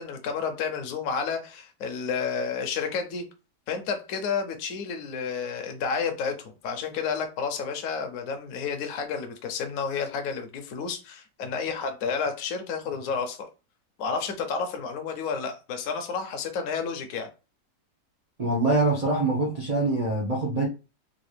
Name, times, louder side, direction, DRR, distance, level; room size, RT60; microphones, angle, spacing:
voice 1, 0.0-3.3 3.7-13.5 14.0-17.3, left 5 dB, 60° left, 1.0 m, -31 dB
voice 2, 18.4-20.7, right 2 dB, 60° right, 0.4 m, -24 dB
3.9 x 2.4 x 3.2 m
omnidirectional pair, 1.9 m